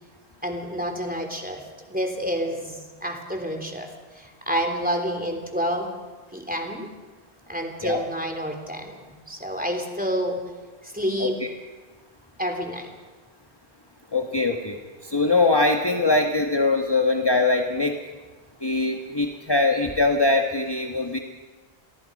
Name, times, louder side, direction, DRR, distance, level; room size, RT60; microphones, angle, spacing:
voice 1, 0.4-1.6 1.9-3.9 4.2-5.9 6.3-6.9 7.5-10.4 10.8-11.4 12.4-12.9, equal, 10° right, 4 dB, 3.4 m, -28 dB
voice 2, 14.1-17.9 18.6-21.2, left 3 dB, 25° left, 3 dB, 1.4 m, -22 dB
29.5 x 23.0 x 5.3 m, 1.3 s
omnidirectional pair, 1.0 m